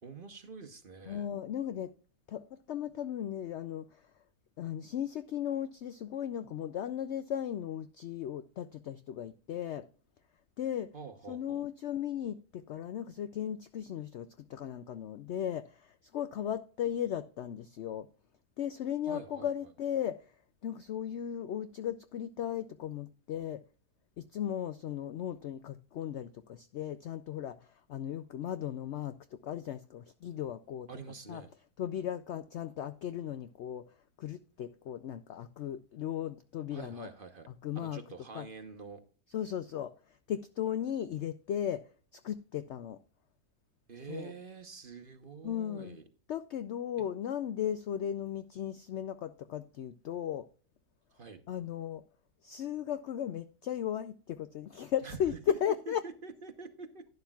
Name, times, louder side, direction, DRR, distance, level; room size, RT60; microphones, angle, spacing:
voice 1, 0.0-1.3 10.9-11.6 19.1-19.5 30.9-31.5 36.7-37.5 37.7-39.0 43.9-46.0 51.1-51.4 55.0-55.4 56.0-57.0, right 5 dB, 40° right, 1.0 m, -46 dB
voice 2, 1.1-1.9 2.3-4.1 4.6-9.9 10.6-10.9 11.3-18.1 18.6-20.3 20.6-23.6 24.2-30.9 31.3-31.4 31.8-33.9 34.2-37.1 37.6-38.0 38.3-38.5 39.3-39.9 40.3-43.0 44.1-44.3 45.4-46.0 46.3-50.5 51.5-52.0 52.4-56.0, left 10 dB, 80° left, 0.6 m, -36 dB
11.5 x 10.5 x 2.3 m
omnidirectional pair, 1.7 m